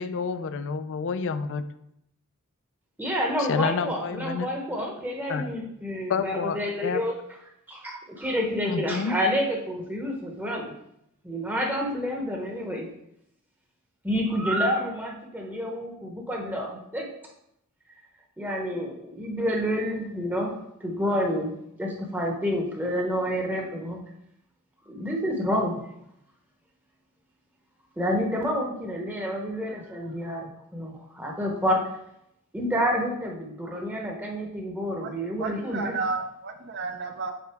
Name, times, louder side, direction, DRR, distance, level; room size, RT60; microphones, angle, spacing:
voice 1, 0.0-1.6 3.4-4.5 5.3-5.5 6.1-7.0 8.7-9.2, left 5 dB, 60° left, 12 dB, 0.4 m, -29 dB
voice 2, 3.0-7.1 7.7-10.7 11.2-12.9 14.0-17.1 18.4-20.6 20.8-21.5 21.8-24.0 24.9-25.8 28.0-31.8 32.5-35.9, equal, 10° right, 0 dB, 0.9 m, -29 dB
voice 3, 35.0-37.3, right 4 dB, 50° right, 6 dB, 0.7 m, -32 dB
7.9 x 3.9 x 3.5 m, 0.78 s
head